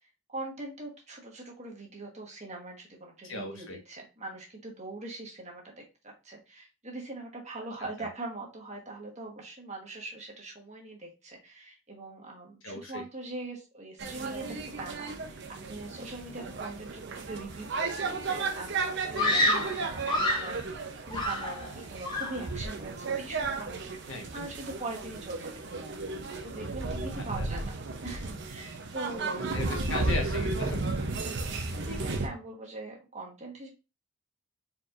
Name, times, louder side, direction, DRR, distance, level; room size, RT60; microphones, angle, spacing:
voice 1, 0.3-15.4 15.7-25.5 25.8-25.9 26.4-27.8 28.0-29.8 31.1-33.7, right 2 dB, 35° right, 0 dB, 1.3 m, -42 dB
voice 2, 3.2-3.8 8.0-8.1 12.6-13.0 24.1-24.5 27.4-27.5 29.3-30.8, left 2 dB, 60° left, 2 dB, 1.4 m, -37 dB
sound 1, 14.0-32.3, right 3 dB, 55° right, 0.7 m, -34 dB
Screaming, 19.2-20.6 21.1-21.8 22.0-22.5, left 1 dB, 20° left, 1.1 m, -28 dB
4.5 x 4.2 x 2.5 m, 0.28 s
head